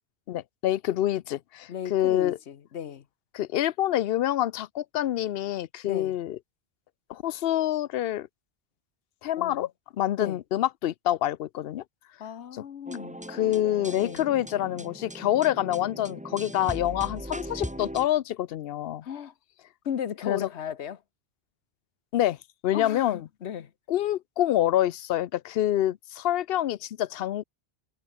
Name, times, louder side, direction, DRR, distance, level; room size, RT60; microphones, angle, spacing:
voice 1, 0.3-2.4 3.3-6.4 7.1-8.3 9.2-9.7 10.0-11.8 12.5-12.6 13.3-19.0 20.3-20.5 22.1-22.4 22.6-23.2 23.9-27.4, left 12 dB, 70° left, 0.8 m, -26 dB
voice 2, 1.7-3.0 5.9-6.2 9.4-9.7 10.2-10.4 12.2-13.2 14.0-14.2 19.0-19.3 19.8-21.0 22.7-23.7, left 8 dB, 85° left, 1.2 m, -35 dB
sound 1, 12.9-18.1, equal, 5° right, 2.2 m, -39 dB
omnidirectional pair, 1.1 m